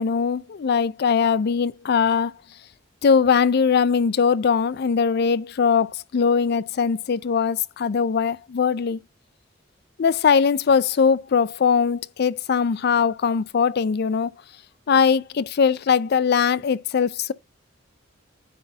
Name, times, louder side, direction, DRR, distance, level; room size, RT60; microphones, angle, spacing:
voice 1, 0.0-2.3 3.0-9.0 10.0-14.3 14.9-17.3, left 6 dB, 55° left, 0.4 m, -21 dB
9.5 x 4.0 x 3.9 m
head